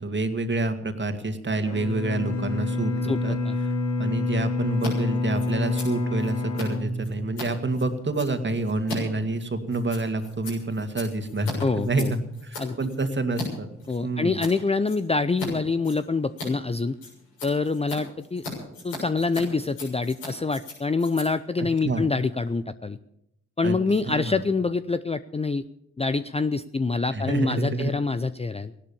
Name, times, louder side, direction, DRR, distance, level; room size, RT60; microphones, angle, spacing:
voice 1, 0.0-3.4 3.6-3.7 4.0-13.7 14.0-14.4 21.6-22.0 23.6-23.8 24.1-24.4 27.1-27.9, right 2 dB, 30° right, 7 dB, 2.2 m, -28 dB
Bowed string instrument, 1.6-7.7, left 2 dB, 55° left, 3.1 m, -28 dB
Scissors, 4.7-4.9 5.2-13.5 13.8-14.5 14.8-15.5 15.8-22.5, left 3 dB, 85° left, 7.4 m, -40 dB
voice 2, 11.6-12.1 12.6-12.8 13.9-16.9 17.4-18.4 18.8-23.0 23.6-25.6 26.0-28.7, left 3 dB, 20° left, 13 dB, 0.6 m, -26 dB
16.5 x 11.5 x 7.1 m, 0.80 s
hypercardioid pair, 45°, 35 cm